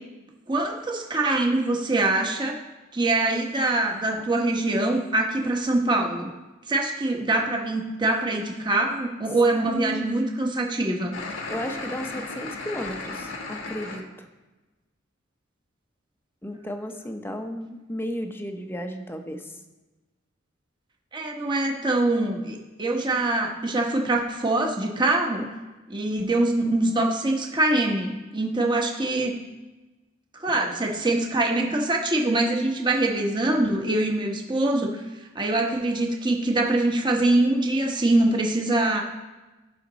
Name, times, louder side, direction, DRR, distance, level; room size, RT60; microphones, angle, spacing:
voice 1, 0.5-2.6 2.9-6.3 6.7-11.1 21.1-25.5 25.9-29.4 30.4-35.0 35.3-39.0, right 2 dB, 25° right, 1 dB, 1.1 m, -24 dB
voice 2, 9.7-10.2 11.5-14.3 16.4-19.6, equal, 10° left, 5 dB, 0.8 m, -34 dB
sound 1, 11.1-14.0, left 3 dB, 70° left, 1.4 m, -35 dB
14.5 x 5.8 x 4.0 m, 1.1 s
head